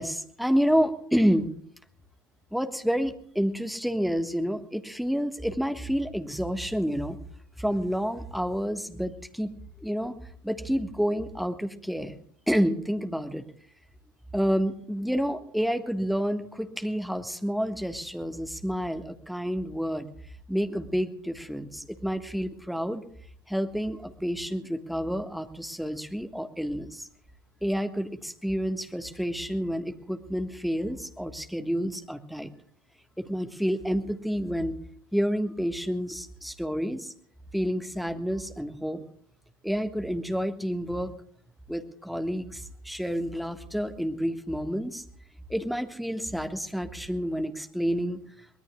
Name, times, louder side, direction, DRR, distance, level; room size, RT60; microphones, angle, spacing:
voice 1, 0.0-1.5 2.5-7.2 7.6-9.5 9.8-10.2 10.4-12.1 12.5-13.4 14.3-20.1 20.5-23.0 23.5-27.1 27.6-32.5 33.2-34.8 35.1-37.1 37.5-39.0 39.6-41.1 41.7-45.1 45.5-48.2, equal, ahead, 7 dB, 1.4 m, -29 dB
23.5 x 20.0 x 2.3 m, 0.62 s
figure-of-eight pair, 70°, 11 cm